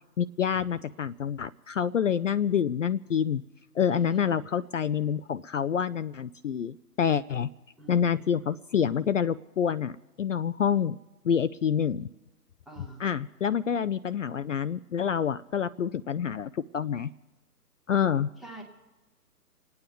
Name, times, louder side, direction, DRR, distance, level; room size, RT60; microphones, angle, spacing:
voice 1, 0.2-3.4 3.7-7.5 7.9-9.9 10.2-11.0 11.2-12.1 13.0-17.1 17.9-18.3, left 8 dB, 55° left, 13 dB, 0.5 m, -27 dB
voice 2, 3.9-4.3 7.8-8.2 12.7-13.1 18.4-18.6, right 1 dB, ahead, -1 dB, 0.8 m, -45 dB
27.0 x 9.4 x 5.3 m, 1.1 s
figure-of-eight pair, 135°, 48 cm